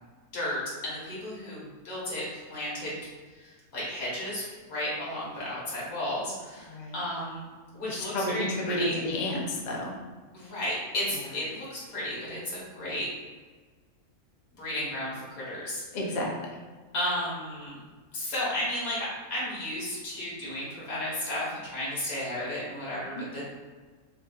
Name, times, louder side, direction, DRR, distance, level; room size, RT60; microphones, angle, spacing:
voice 1, 0.3-3.1 3.4-7.5 7.7-9.0 10.3-13.1 14.6-16.1 16.9-17.8 18.1-23.4, left 1 dB, 75° left, -6 dB, 1.8 m, -33 dB
voice 2, 8.0-9.9 15.9-16.6, left 1 dB, 50° left, -1 dB, 0.5 m, -31 dB
5.7 x 2.8 x 2.4 m, 1.4 s
omnidirectional pair, 1.5 m